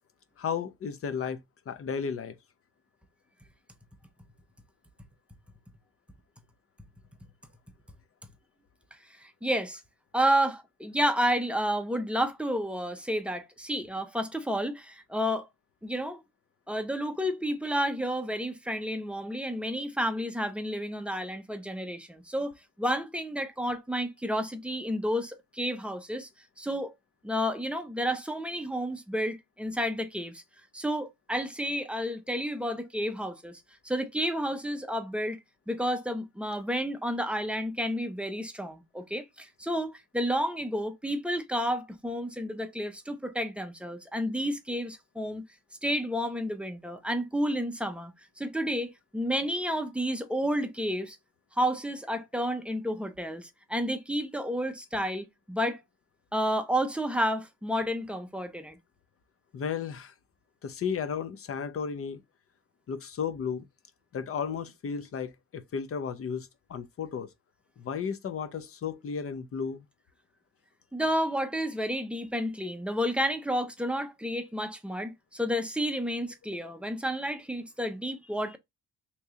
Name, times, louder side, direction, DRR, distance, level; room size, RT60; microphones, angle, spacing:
voice 1, 0.4-2.4 59.5-60.1 60.6-62.2 62.9-63.7 64.1-67.3 67.8-69.8, left 6 dB, 40° left, 0.6 m, -34 dB
voice 2, 9.2-9.8 10.1-15.5 15.8-16.2 16.7-26.3 26.6-26.9 27.2-30.4 30.7-35.4 35.7-45.4 45.8-51.2 51.6-55.8 56.3-58.8 70.9-78.6, equal, 5° right, 0.5 m, -31 dB
3.0 x 2.8 x 3.5 m
cardioid pair, 105°, 35 cm